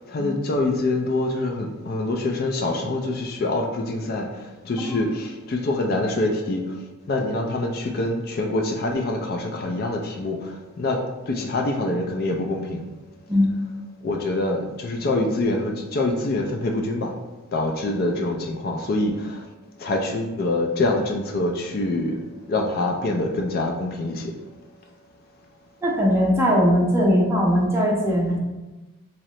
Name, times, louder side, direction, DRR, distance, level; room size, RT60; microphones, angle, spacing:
voice 1, 0.1-4.3 4.6-6.6 7.1-10.5 10.8-11.0 11.3-12.8 14.0-17.1 17.5-19.4 19.8-22.2 22.5-24.3, left 2 dB, 45° left, 1 dB, 0.3 m, -25 dB
voice 2, 25.8-28.4, equal, 10° right, -3 dB, 0.5 m, -20 dB
2.9 x 2.8 x 3.1 m, 1.1 s
head